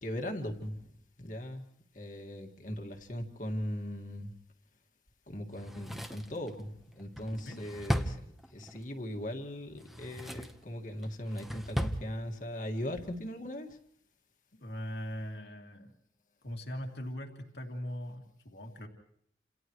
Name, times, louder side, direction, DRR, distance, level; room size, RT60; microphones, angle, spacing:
voice 1, 0.0-1.7 1.9-4.3 5.3-13.8, equal, 45° left, 3 dB, 2.0 m, -39 dB
Drawer open or close, 5.5-8.8 9.7-10.6 11.0-12.0 12.3-12.4, equal, ahead, 1.0 m, -36 dB
voice 2, 7.3-7.6 14.6-15.9 16.4-18.9, equal, 70° left, 1 dB, 2.5 m, -40 dB
30.0 x 27.5 x 3.2 m, 0.67 s
head